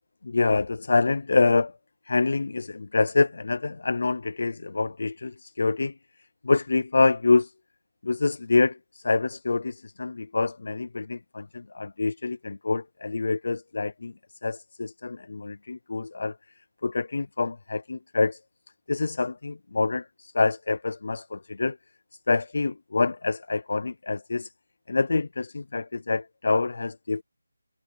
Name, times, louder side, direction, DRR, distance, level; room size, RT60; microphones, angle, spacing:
voice 1, 0.2-1.8 2.0-6.0 6.4-7.5 8.0-14.1 14.4-16.4 16.8-18.4 18.9-21.8 22.3-24.5 24.9-27.2, left 3 dB, 50° left, 0.5 m, -26 dB
figure-of-eight pair, 175°, 0 cm